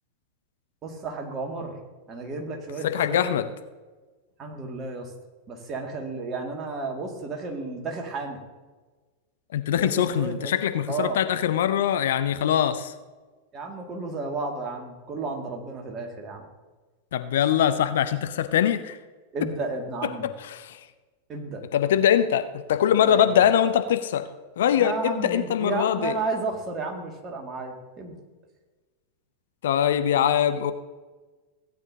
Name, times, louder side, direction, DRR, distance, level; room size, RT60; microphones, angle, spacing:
voice 1, 0.8-1.7 2.1-3.3 4.4-5.1 5.5-8.4 9.7-10.6 10.9-11.2 13.5-16.4 19.3-20.3 21.3-21.6 23.0-23.4 24.8-28.2, right 3 dB, 25° right, 2 dB, 2.0 m, -32 dB
voice 2, 2.8-3.5 9.5-12.9 17.1-19.0 20.4-20.8 21.7-24.3 24.6-26.2 29.6-30.7, left 10 dB, 60° left, 10 dB, 0.6 m, -22 dB
16.5 x 9.4 x 2.8 m, 1.3 s
figure-of-eight pair, 90°, 0 cm